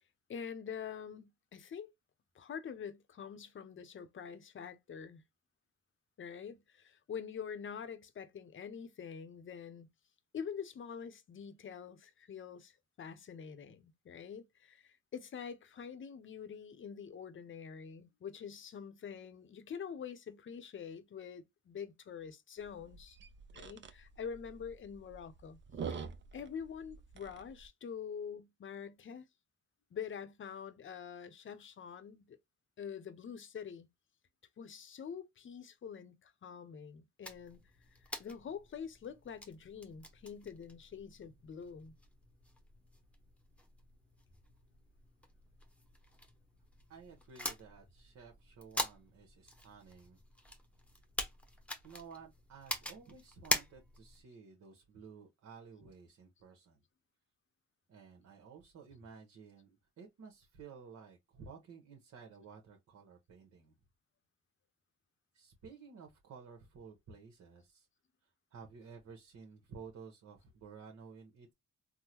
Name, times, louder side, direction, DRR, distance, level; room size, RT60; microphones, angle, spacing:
voice 1, 0.3-1.9 2.3-5.2 6.2-9.9 10.3-23.2 23.5-25.6 25.9-26.1 26.3-29.3 29.9-32.4 32.8-33.9 34.6-37.6 38.0-41.9, left 7 dB, 40° left, 0.7 m, -46 dB
sound 1, 22.6-27.7, right 6 dB, 40° right, 0.6 m, -47 dB
sound 2, 37.2-54.2, left 1 dB, 5° left, 0.9 m, -44 dB
voice 2, 46.9-50.2 51.8-56.8 57.9-63.7 65.3-67.9 68.2-71.5, right 5 dB, 60° right, 1.1 m, -54 dB
3.6 x 2.1 x 2.9 m
cardioid pair, 90°, 30 cm